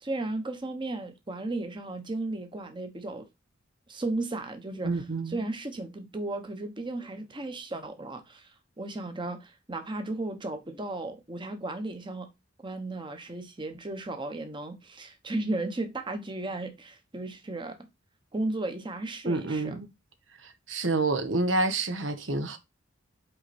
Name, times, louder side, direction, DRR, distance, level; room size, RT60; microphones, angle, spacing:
voice 1, 0.0-3.3 3.9-4.9 5.3-8.5 8.8-12.3 12.6-17.8 18.3-19.7, right 2 dB, 25° right, 1.0 m, -35 dB
voice 2, 4.8-5.4 19.2-19.9 20.4-22.6, right 2 dB, 75° right, 1.0 m, -28 dB
5.7 x 4.4 x 4.1 m
head